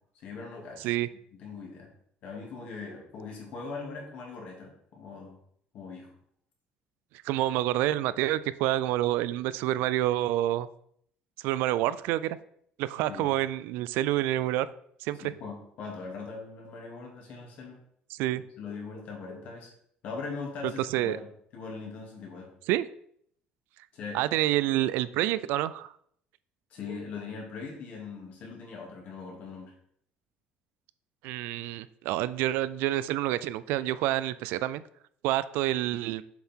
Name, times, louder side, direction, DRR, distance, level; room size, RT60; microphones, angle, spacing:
voice 1, 0.1-1.9 2.2-5.4 5.7-6.1 13.1-13.4 15.1-17.8 18.3-19.7 20.0-21.2 21.5-22.5 23.9-24.2 26.7-29.7, left 4 dB, 50° left, 0 dB, 2.4 m, -41 dB
voice 2, 7.2-10.7 11.4-12.4 12.8-14.7 15.0-15.2 18.1-18.4 20.9-21.2 22.7-22.9 24.1-25.9 31.2-34.8 35.2-36.2, right 14 dB, 85° right, 16 dB, 0.4 m, -28 dB
7.3 x 5.6 x 4.5 m, 0.67 s
cardioid pair, 175°, 3 cm